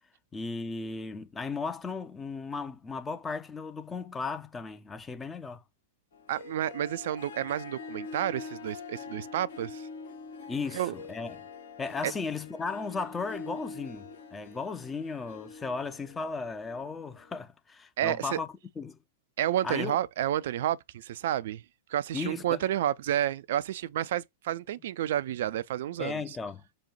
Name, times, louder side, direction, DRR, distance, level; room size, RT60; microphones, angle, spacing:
voice 1, 0.3-5.6 10.5-11.5 11.8-18.5 18.8-19.0 19.6-20.0 22.1-22.6 26.0-26.6, left 4 dB, 15° left, 0.6 m, -36 dB
Harp, 6.1-17.3, left 4 dB, 60° left, 1.2 m, -45 dB
voice 2, 6.3-9.9 10.7-10.9 12.0-12.1 18.0-18.4 19.4-21.6 21.9-26.2, right 11 dB, 55° right, 0.4 m, -30 dB
5.2 x 2.4 x 4.3 m
figure-of-eight pair, 95°, 0 cm